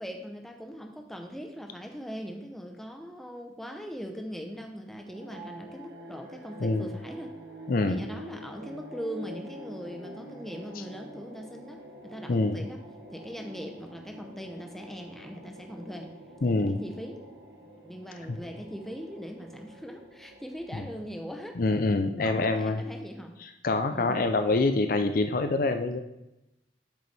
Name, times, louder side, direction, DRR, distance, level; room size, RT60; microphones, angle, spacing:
voice 1, 0.0-7.3 7.9-12.8 13.1-16.1 16.5-17.2 17.6-21.6 22.2-23.4 23.9-24.3, equal, ahead, 3 dB, 0.7 m, -40 dB
sound 1, 5.0-21.5, equal, 70° right, 1.5 m, -47 dB
voice 2, 7.7-8.0 12.3-12.6 16.4-16.8 18.3-18.4 20.7-20.8 21.6-22.8 23.4-26.0, left 2 dB, 50° left, 7 dB, 0.5 m, -26 dB
8.3 x 6.7 x 3.4 m, 0.92 s
head